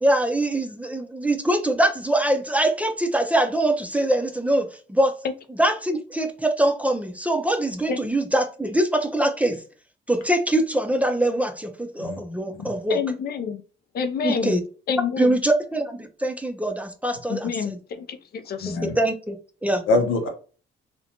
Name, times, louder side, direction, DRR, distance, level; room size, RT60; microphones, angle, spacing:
voice 1, 0.0-5.1 5.6-9.6 10.1-13.0 14.2-14.6 15.2-17.8 18.8-19.8, right 1 dB, 5° right, 0.4 m, -23 dB
voice 2, 12.9-13.6 13.9-14.5 14.9-15.3 17.3-18.8, left 6 dB, 50° left, 0.5 m, -28 dB
voice 3, 18.6-19.0 19.9-20.3, left 3 dB, 85° left, 0.8 m, -23 dB
2.5 x 2.1 x 2.8 m
cardioid pair, 90°, 20 cm